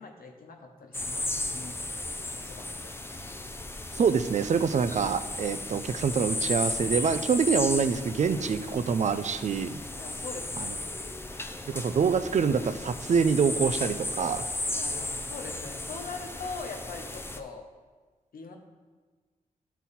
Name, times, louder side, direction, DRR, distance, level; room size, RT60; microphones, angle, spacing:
voice 1, 0.0-1.8 2.3-2.9 10.0-10.8 14.7-17.6 18.3-18.6, left 4 dB, 75° left, 2 dB, 1.1 m, -42 dB
sound 1, 0.9-17.4, left 2 dB, 15° left, 0.5 m, -35 dB
voice 2, 4.0-9.8 10.6-10.7 11.7-14.4, right 6 dB, 50° right, 11 dB, 0.5 m, -26 dB
12.0 x 4.1 x 4.2 m, 1.4 s
wide cardioid pair, 100°, 15 cm